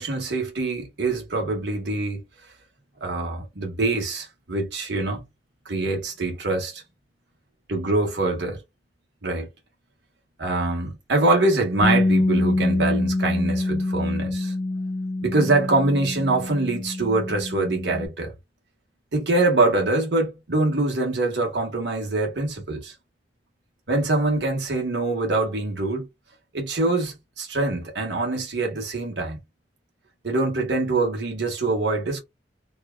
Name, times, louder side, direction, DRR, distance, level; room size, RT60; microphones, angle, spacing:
voice 1, 0.0-2.2 3.0-5.2 5.6-6.8 7.7-8.6 9.2-9.5 10.4-14.5 15.2-18.3 19.1-22.9 23.9-26.1 26.5-29.4 30.2-32.2, right 2 dB, 70° right, 1.2 m, -24 dB
Bass guitar, 11.8-18.1, left 2 dB, 35° left, 0.4 m, -25 dB
3.0 x 2.3 x 2.2 m
head